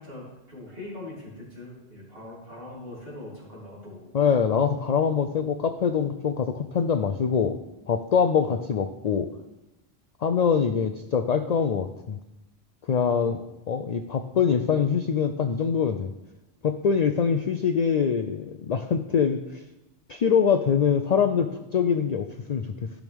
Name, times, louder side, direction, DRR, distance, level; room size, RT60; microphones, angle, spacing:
voice 1, 0.0-4.1 8.4-8.6 13.2-13.4, left 1 dB, 55° right, -6 dB, 3.6 m, -42 dB
voice 2, 4.1-7.6 7.9-9.3 10.2-12.2 12.9-13.4 13.7-16.1 16.6-19.6 20.1-22.9, left 6 dB, 60° left, 8 dB, 0.4 m, -24 dB
14.0 x 6.2 x 3.5 m, 0.96 s
omnidirectional pair, 1.2 m